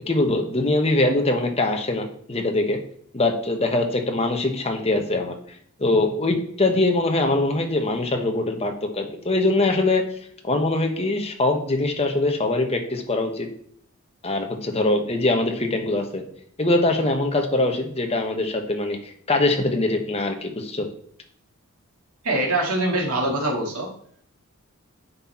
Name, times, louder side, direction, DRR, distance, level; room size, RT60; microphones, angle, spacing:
voice 1, 0.1-2.8 3.1-5.4 5.8-10.0 10.4-13.5 14.2-16.2 16.6-20.9, left 2 dB, 30° left, 4 dB, 1.0 m, -22 dB
voice 2, 22.2-23.9, right 1 dB, 85° right, -1 dB, 1.9 m, -23 dB
9.7 x 4.3 x 4.3 m, 0.63 s
head